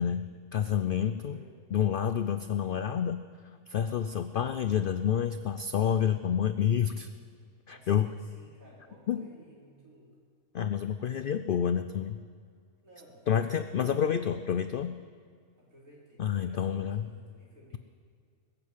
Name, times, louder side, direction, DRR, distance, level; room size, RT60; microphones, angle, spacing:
voice 1, 0.0-1.4 1.7-3.2 3.7-7.1 7.7-8.1 9.1-9.2 10.5-12.2 13.3-15.0 16.2-17.1, left 8 dB, 75° left, 11 dB, 0.4 m, -29 dB
voice 2, 6.9-7.3 7.7-10.1 12.8-14.2 15.6-17.8, right 1 dB, 70° right, -5 dB, 4.6 m, -56 dB
20.5 x 8.2 x 8.2 m, 2.2 s
omnidirectional pair, 1.5 m